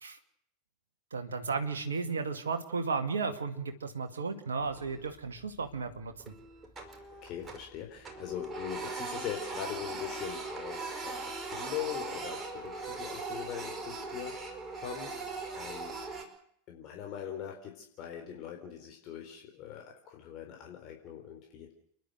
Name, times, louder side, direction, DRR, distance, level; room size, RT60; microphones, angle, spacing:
voice 1, 1.1-6.3, right 4 dB, 75° right, 6 dB, 2.0 m, -34 dB
Printer, 4.8-5.3 5.6-5.8 6.2-7.8 8.0-16.2, right 3 dB, 20° right, 5.1 m, -40 dB
voice 2, 7.2-14.5 14.7-15.2 15.5-16.0 16.7-21.7, left 10 dB, 45° left, 2 dB, 4.1 m, -41 dB
30.0 x 11.5 x 7.9 m, 0.68 s
figure-of-eight pair, 85°, 0 cm